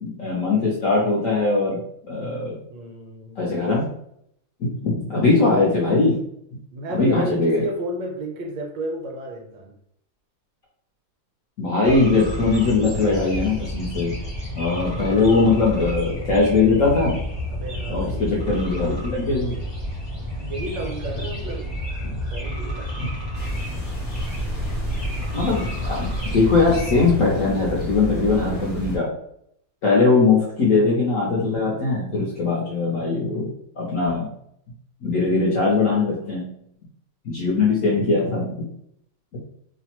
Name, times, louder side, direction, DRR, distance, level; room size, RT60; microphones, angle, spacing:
voice 1, 0.0-1.8 2.1-2.6 3.4-3.9 4.6-6.2 6.9-7.6 11.6-14.1 14.5-17.2 17.9-19.6 22.0-22.1 23.0-23.1 25.3-29.1 29.8-33.5 33.8-34.3 35.0-36.4 37.2-38.5, left 3 dB, 65° left, -5 dB, 0.8 m, -20 dB
voice 2, 2.7-3.4 6.7-9.7 15.7-15.9 17.5-18.3 20.4-21.7 22.3-23.1, right 2 dB, 75° right, 1 dB, 1.3 m, -32 dB
sound 1, 11.8-27.1, equal, 30° left, 0.5 m, -30 dB
sound 2, 23.3-29.0, equal, 85° left, 0.4 m, -30 dB
3.1 x 2.0 x 2.9 m, 0.72 s
omnidirectional pair, 2.1 m